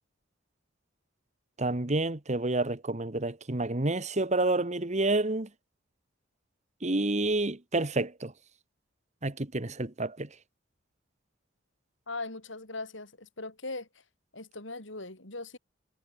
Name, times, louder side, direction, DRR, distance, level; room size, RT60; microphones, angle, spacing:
voice 1, 1.6-5.5 6.8-8.3 9.2-10.3, right 2 dB, 35° right, 1.5 m, -29 dB
voice 2, 12.1-13.9 14.3-15.6, left 2 dB, 65° left, 4.8 m, -39 dB
head